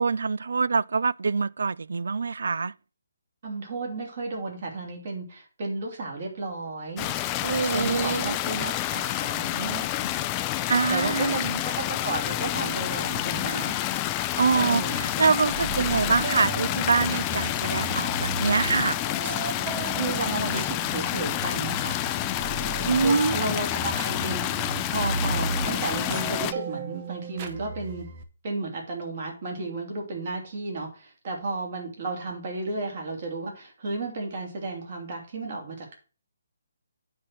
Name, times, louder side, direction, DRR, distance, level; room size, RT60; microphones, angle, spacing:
voice 1, 0.0-2.7 7.4-8.4 10.7-11.6 14.4-19.0 22.9-23.4, right 4 dB, 70° right, 0.3 m, -25 dB
voice 2, 3.4-7.1 7.7-10.1 10.9-13.7 14.5-15.1 15.7-15.9 20.0-22.0 23.0-24.5 24.9-28.1 28.4-36.0, right 3 dB, 45° right, 3.1 m, -33 dB
sound 1, 7.0-26.5, left 14 dB, 20° left, 0.4 m, -29 dB
sound 2, 14.5-28.2, right 4 dB, 30° right, 0.9 m, -35 dB
9.3 x 4.5 x 6.2 m
hypercardioid pair, 165°, 0 cm